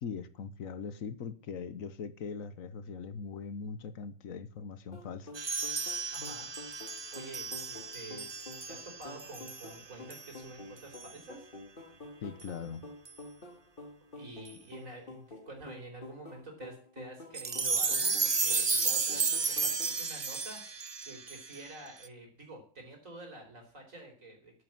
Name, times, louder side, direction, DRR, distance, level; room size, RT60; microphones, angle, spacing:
voice 1, 0.0-5.3 12.2-12.9, left 6 dB, 90° left, 1.5 m, -41 dB
sound 1, 4.9-20.0, left 2 dB, 40° left, 2.3 m, -49 dB
sound 2, 5.3-9.8 10.1-10.3 10.9-11.1 12.4-12.5 13.1-13.2 14.5-14.6 17.3-22.1, right 4 dB, 30° right, 0.5 m, -33 dB
voice 2, 6.1-6.5 7.1-11.5 14.2-24.5, right 2 dB, 80° right, 4.9 m, -48 dB
11.5 x 9.5 x 7.5 m
omnidirectional pair, 1.4 m